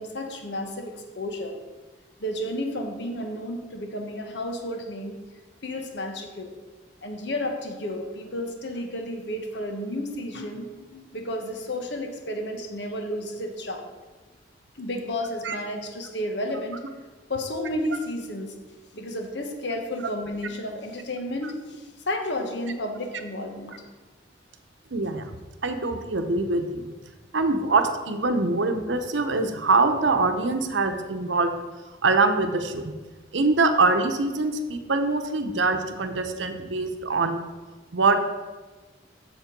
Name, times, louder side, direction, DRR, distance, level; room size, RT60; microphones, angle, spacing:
voice 1, 0.0-1.5 2.2-5.2 5.6-6.5 7.0-13.9 14.7-16.8 17.3-18.5 18.9-23.7, left 1 dB, 70° left, 4 dB, 1.2 m, -32 dB
voice 2, 24.9-25.3 25.6-26.9 27.3-31.5 32.0-32.9 33.3-37.4 37.9-38.2, right 3 dB, 90° right, 7 dB, 0.9 m, -23 dB
7.4 x 6.8 x 5.2 m, 1.3 s
head